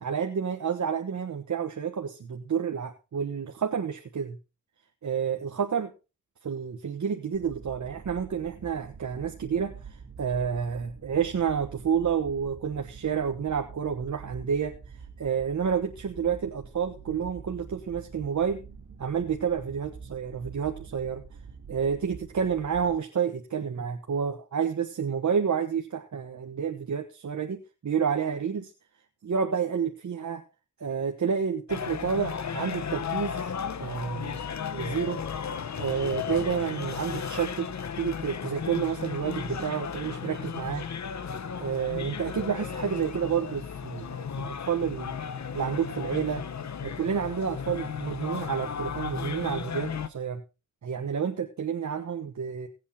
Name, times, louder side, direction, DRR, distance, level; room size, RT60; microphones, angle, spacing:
voice 1, 0.0-4.4 5.0-5.9 6.4-14.7 15.2-18.6 19.0-21.2 21.7-28.7 29.2-30.4 30.8-33.5 33.8-34.4 34.7-35.2 35.8-40.8 41.6-45.1 45.5-46.4 46.8-50.4 50.8-52.7, right 7 dB, 70° right, 4 dB, 1.3 m, -29 dB
sound 1, 7.3-23.0, right 5 dB, 85° right, 2.2 m, -46 dB
sound 2, 31.7-50.1, left 7 dB, 65° left, 1.1 m, -35 dB
17.5 x 8.3 x 4.2 m, 0.30 s
wide cardioid pair, 80°, 30 cm